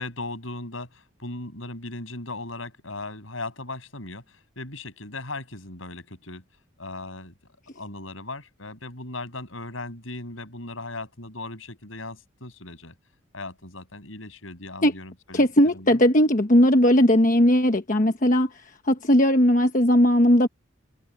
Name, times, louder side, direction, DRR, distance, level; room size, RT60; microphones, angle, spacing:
voice 1, 0.0-6.4 6.8-7.3 7.8-12.9 13.3-15.5 15.7-16.0, left 2 dB, 75° left, 7.3 m, -37 dB
voice 2, 15.3-20.5, equal, 40° left, 1.2 m, -18 dB
head